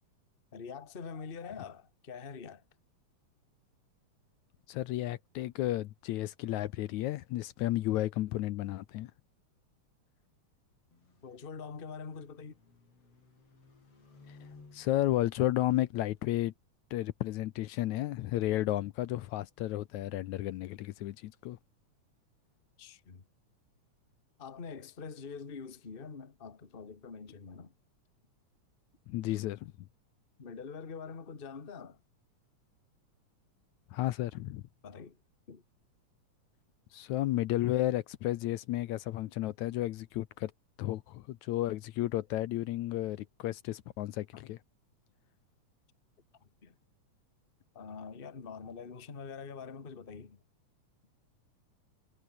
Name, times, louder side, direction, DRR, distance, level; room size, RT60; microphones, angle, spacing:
voice 1, 0.5-2.6 11.2-12.6 22.8-23.2 24.4-27.7 30.4-32.0 34.8-35.2 35.5-35.6 44.3-44.4 46.4-46.7 47.7-50.4, left 5 dB, 25° left, 1.4 m, -45 dB
voice 2, 4.7-9.1 14.7-16.5 16.9-21.6 29.1-29.7 33.9-34.6 36.9-40.5 40.8-44.6, left 15 dB, 75° left, 2.1 m, -32 dB
sound 1, 10.9-16.4, left 4 dB, 50° left, 6.2 m, -59 dB
omnidirectional pair, 3.5 m